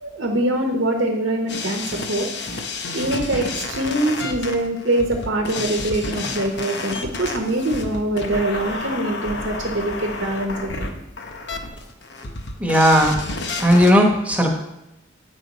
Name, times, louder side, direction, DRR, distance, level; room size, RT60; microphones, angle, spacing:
voice 1, 0.0-2.3 2.9-10.9, right 1 dB, 80° right, 2 dB, 1.0 m, -23 dB
sound 1, 1.5-13.9, left 3 dB, 60° left, 0.8 m, -30 dB
voice 2, 12.6-13.2 13.6-14.6, equal, 5° right, 0 dB, 1.0 m, -16 dB
8.8 x 5.3 x 4.1 m, 0.89 s
head